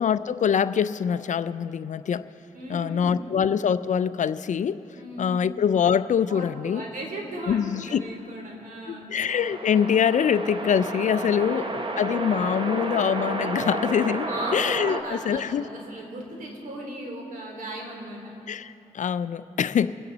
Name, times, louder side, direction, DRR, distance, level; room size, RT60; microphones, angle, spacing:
voice 1, 0.0-2.3 2.7-4.8 5.2-6.8 7.5-8.1 8.9-15.6 18.5-19.9, left 8 dB, 55° left, 14 dB, 0.5 m, -24 dB
voice 2, 2.5-3.3 4.9-5.4 6.3-9.1 11.4-11.8 14.2-18.3, right 1 dB, 65° right, 0 dB, 3.5 m, -37 dB
sound 1, 9.3-15.0, right 2 dB, 35° right, 1.3 m, -31 dB
25.0 x 9.8 x 4.1 m, 2.8 s
cardioid pair, 65°, 15 cm